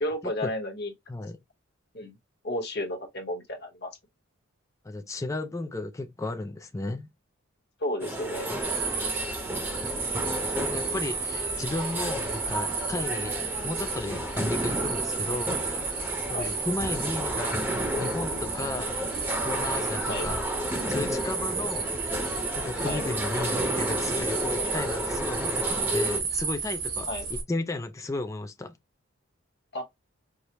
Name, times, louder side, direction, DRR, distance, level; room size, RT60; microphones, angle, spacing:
voice 1, 0.0-0.9 1.9-2.2 2.4-3.9 7.8-8.5 16.3-16.5 20.1-20.3 22.8-23.0 24.6-24.7 27.1-27.3 29.7-29.8, left 1 dB, 50° left, 1.0 m, -32 dB
voice 2, 4.8-7.1 10.6-13.4 13.6-15.9 16.3-17.6 18.0-19.0 19.4-22.0 22.5-28.8, left 2 dB, 15° left, 0.3 m, -34 dB
sound 1, 8.0-26.2, equal, 10° right, 0.7 m, -32 dB
sound 2, 8.6-27.4, right 5 dB, 85° right, 2.5 m, -33 dB
4.8 x 2.0 x 2.9 m
head